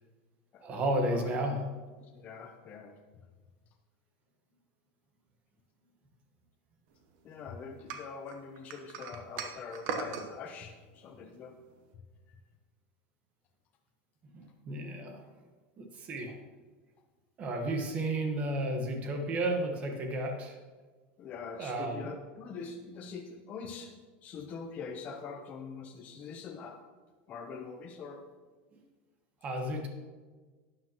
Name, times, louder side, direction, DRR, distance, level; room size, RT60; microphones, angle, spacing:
voice 1, 0.6-1.7 14.3-15.3 15.8-16.4 17.4-20.6 21.6-22.1 29.4-29.9, right 1 dB, 25° right, 3 dB, 1.2 m, -32 dB
voice 2, 2.1-3.0 7.2-11.6 21.2-23.9 24.2-26.8 27.3-28.3, left 5 dB, 25° left, 3 dB, 0.7 m, -43 dB
sound 1, 7.9-10.3, right 5 dB, 50° right, 1.0 m, -38 dB
12.0 x 9.6 x 3.0 m, 1.4 s
supercardioid pair, 170°, 6 cm